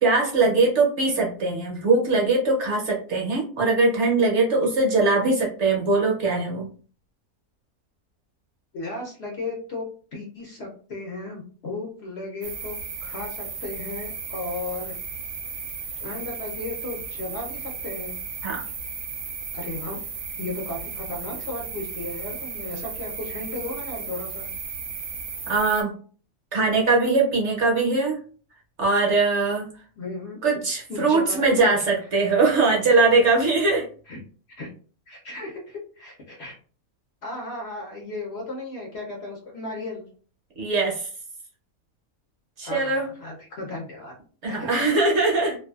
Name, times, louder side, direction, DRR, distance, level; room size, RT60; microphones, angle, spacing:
voice 1, 0.0-6.7 18.4-18.6 25.5-25.9 26.5-28.2 28.8-29.7 30.4-33.8 40.6-41.1 42.6-43.1 44.4-45.6, right 3 dB, 60° right, -2 dB, 1.0 m, -21 dB
voice 2, 8.7-9.9 10.1-12.8 13.0-14.9 16.0-18.1 19.5-20.0 20.4-24.5 30.0-30.4 30.9-31.7 34.1-34.2 34.6-34.7 35.1-36.5 37.2-40.1 42.6-44.1 44.4-44.9, left 2 dB, 60° left, -2 dB, 0.8 m, -35 dB
sound 1, 12.4-25.8, right 5 dB, 85° right, 1.1 m, -35 dB
2.6 x 2.2 x 2.3 m, 0.41 s
omnidirectional pair, 1.5 m